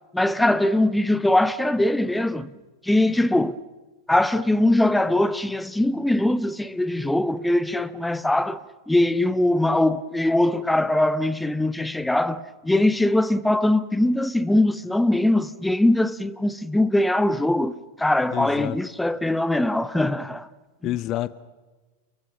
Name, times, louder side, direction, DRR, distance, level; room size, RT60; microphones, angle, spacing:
voice 1, 0.1-2.5 2.8-3.6 4.1-8.6 8.9-20.5 20.8-21.0, left 1 dB, 5° left, 0.9 m, -21 dB
voice 2, 18.3-18.8 20.8-21.3, left 14 dB, 35° left, 0.8 m, -27 dB
29.0 x 23.0 x 6.1 m
figure-of-eight pair, 90°, 0 cm